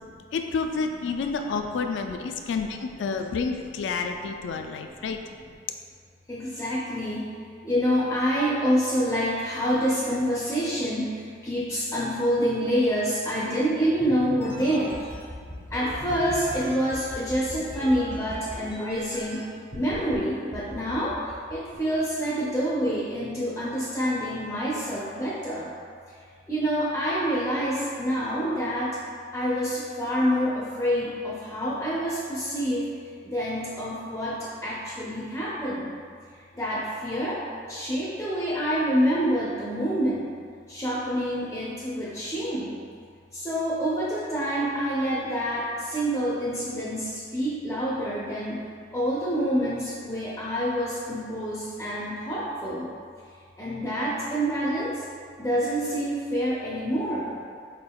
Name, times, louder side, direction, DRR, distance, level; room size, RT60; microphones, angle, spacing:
voice 1, 0.3-5.2, left 4 dB, 70° left, 5 dB, 0.3 m, -29 dB
voice 2, 6.3-7.3 7.6-15.0 15.7-19.5 19.7-25.7 26.5-29.0 29.3-32.9 33.2-35.9 36.5-37.4 37.7-40.3 40.7-42.8 43.3-52.9 53.6-55.0 55.4-57.3, equal, 15° left, -8 dB, 0.5 m, -27 dB
sound 1, 14.0-19.4 19.7-20.2 20.5-22.0, left 1 dB, 30° right, 0.9 m, -39 dB
4.6 x 3.5 x 2.2 m, 2.2 s
head